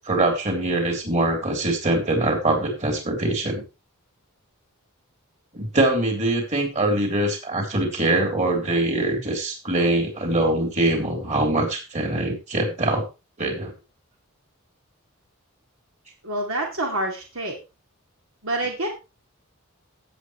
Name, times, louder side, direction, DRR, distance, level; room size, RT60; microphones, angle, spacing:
voice 1, 0.0-3.6 5.5-13.0 13.4-13.7, right 2 dB, 35° right, 2 dB, 3.8 m, -23 dB
voice 2, 16.2-17.6 18.4-18.9, right 1 dB, 65° right, 0 dB, 2.5 m, -27 dB
17.0 x 7.7 x 3.2 m, 0.28 s
head